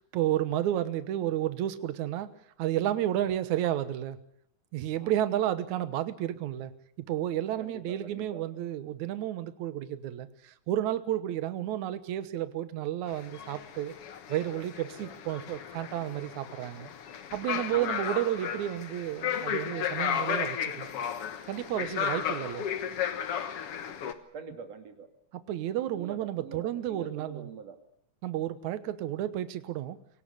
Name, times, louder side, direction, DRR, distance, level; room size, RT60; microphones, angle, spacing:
voice 1, 0.1-2.3 2.6-4.2 4.7-6.7 7.1-13.9 14.3-16.9 17.3-20.9 21.5-22.7 25.5-27.5 28.2-30.0, right 12 dB, 75° right, 13 dB, 2.5 m, -31 dB
voice 2, 7.6-8.4 17.7-18.0 24.3-25.1 25.9-27.8, right 5 dB, 55° right, 6 dB, 3.6 m, -44 dB
sound 1, 13.1-24.1, left 8 dB, 55° left, 2.1 m, -34 dB
24.0 x 18.0 x 8.5 m, 0.69 s
omnidirectional pair, 3.5 m